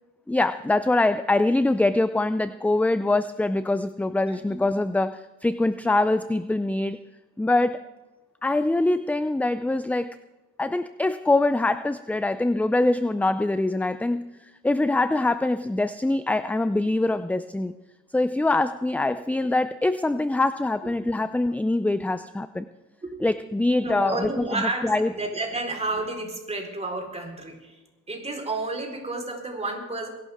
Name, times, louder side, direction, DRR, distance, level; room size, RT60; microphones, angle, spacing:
voice 1, 0.3-7.0 7.4-7.9 8.4-10.2 10.6-14.4 14.6-17.7 18.1-22.7 23.2-25.1, left 2 dB, 5° left, 12 dB, 0.4 m, -24 dB
voice 2, 4.3-4.6 20.8-20.9 23.0-23.3 23.7-27.8 28.1-30.1, right 2 dB, 20° right, 1 dB, 4.2 m, -31 dB
22.5 x 12.0 x 3.6 m, 1.1 s
cardioid pair, 90°, 30 cm